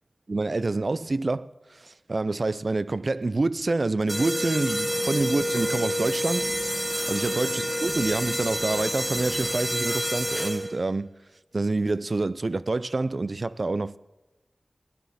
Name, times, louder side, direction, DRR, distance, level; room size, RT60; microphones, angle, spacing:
voice 1, 0.3-6.5 7.1-11.1 11.5-14.0, right 2 dB, 60° right, 0.4 m, -27 dB
sound 1, 4.1-10.9, equal, 5° right, 1.3 m, -28 dB
16.5 x 10.5 x 4.2 m
wide cardioid pair, 45°, 0 cm